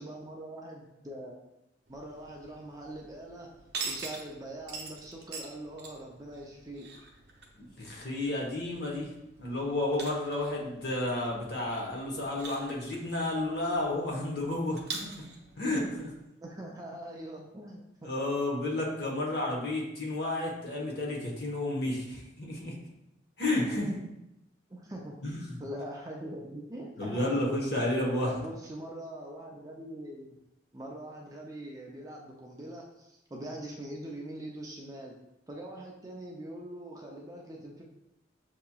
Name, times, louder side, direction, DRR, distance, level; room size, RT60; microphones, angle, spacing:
voice 1, 0.0-1.4 1.9-3.5 3.8-6.9 16.4-18.1 24.7-25.2 25.6-27.8 28.2-30.3 30.7-35.2 35.5-37.8, right 1 dB, 20° right, -1 dB, 0.4 m, -43 dB
sound 1, 1.9-16.2, right 4 dB, 60° right, 0.7 m, -45 dB
voice 2, 7.6-9.1 9.4-15.2 15.6-16.1 18.0-22.8 23.4-24.0 25.2-25.6 27.0-28.3, left 1 dB, 55° left, -2 dB, 1.0 m, -31 dB
6.4 x 2.9 x 2.3 m, 0.88 s
head